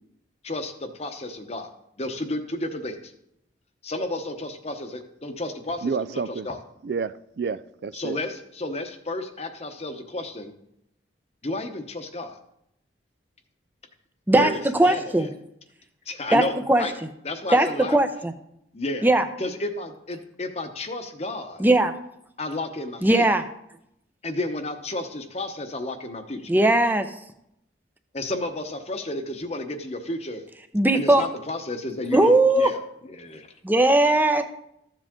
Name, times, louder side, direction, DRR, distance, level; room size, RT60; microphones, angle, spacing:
voice 1, 0.4-1.7 2.0-3.1 3.8-6.6 7.9-10.5 11.4-12.4 14.3-15.3 16.1-16.9 17.2-18.0 18.7-19.1 19.4-21.7 22.4-23.3 24.2-26.5 28.1-30.4 30.9-32.8 33.2-33.5, left 2 dB, 35° left, 7 dB, 0.9 m, -32 dB
voice 2, 5.8-6.5 6.8-8.2, right 5 dB, 60° right, 14 dB, 0.4 m, -29 dB
voice 3, 14.8-15.3 16.3-16.4 16.7-16.8 17.5-18.3 19.0-19.3 21.6-21.9 23.0-23.4 26.5-27.1 30.7-31.3 32.1-32.7 33.6-34.4, right 1 dB, 10° right, 7 dB, 0.6 m, -18 dB
13.5 x 7.5 x 3.7 m, 0.77 s
head